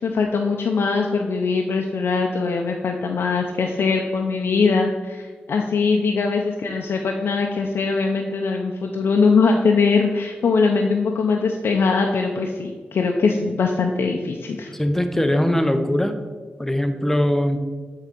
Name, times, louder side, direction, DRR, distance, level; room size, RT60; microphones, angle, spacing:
voice 1, 0.0-14.7, left 4 dB, 85° left, 1 dB, 0.5 m, -21 dB
voice 2, 14.7-16.2 16.6-17.6, left 1 dB, 10° left, 7 dB, 0.6 m, -21 dB
7.4 x 3.7 x 5.2 m, 1.4 s
wide cardioid pair, 85°, 4 cm